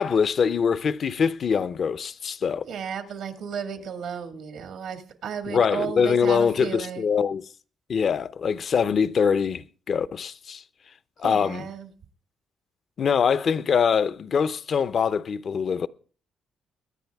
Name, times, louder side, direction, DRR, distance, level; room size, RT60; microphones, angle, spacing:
voice 1, 0.0-2.6 5.5-7.4 7.9-10.6 11.2-11.7 13.0-15.9, left 6 dB, 50° left, 0.7 m, -23 dB
voice 2, 2.7-7.1 11.2-11.9, right 7 dB, 75° right, 1.9 m, -33 dB
23.5 x 9.9 x 3.5 m
cardioid pair, 90°, 0 cm